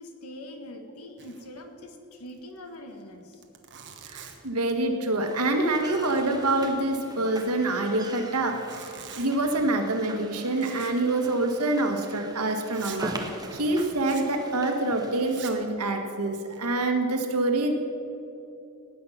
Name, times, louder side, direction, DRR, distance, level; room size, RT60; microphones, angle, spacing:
voice 1, 0.0-3.4, left 1 dB, 70° left, 5 dB, 1.6 m, -43 dB
Zipper (clothing), 1.2-1.6 1.8-1.9 2.3-2.4 3.0-3.1 3.3-4.6 5.1-5.4 5.6-7.1 8.4-9.4 10.6-11.1 11.4-11.5 12.0-12.1 12.7-13.1 14.0-14.3 15.2-15.7 16.3-16.9, right 8 dB, 55° right, 1.3 m, -45 dB
voice 2, 4.1-8.8 9.1-13.1 13.5-17.7, right 2 dB, 85° right, 4 dB, 1.6 m, -26 dB
sound 1, 5.2-15.4, right 2 dB, 20° right, 1.1 m, -42 dB
18.5 x 8.7 x 5.7 m, 2.8 s
head